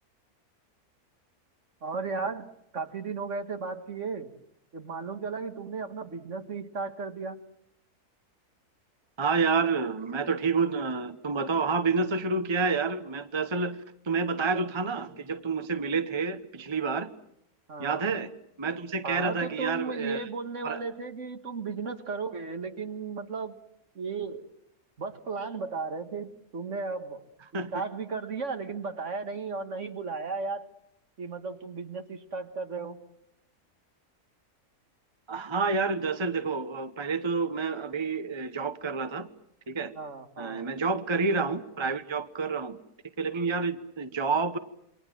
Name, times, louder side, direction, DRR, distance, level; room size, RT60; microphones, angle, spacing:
voice 1, 1.8-2.5 2.7-4.3 4.7-7.4 17.7-18.0 19.0-23.6 24.0-24.5 25.0-27.2 27.7-30.7 31.2-33.0 40.0-40.7, right 4 dB, 55° right, 7 dB, 2.0 m, -35 dB
voice 2, 9.2-17.1 17.8-18.3 18.6-20.3 20.6-20.8 27.5-27.7 35.3-39.3 39.7-39.9 40.4-42.8 43.2-44.6, right 4 dB, 20° right, 10 dB, 0.9 m, -29 dB
28.5 x 23.5 x 7.6 m, 0.79 s
omnidirectional pair, 1.6 m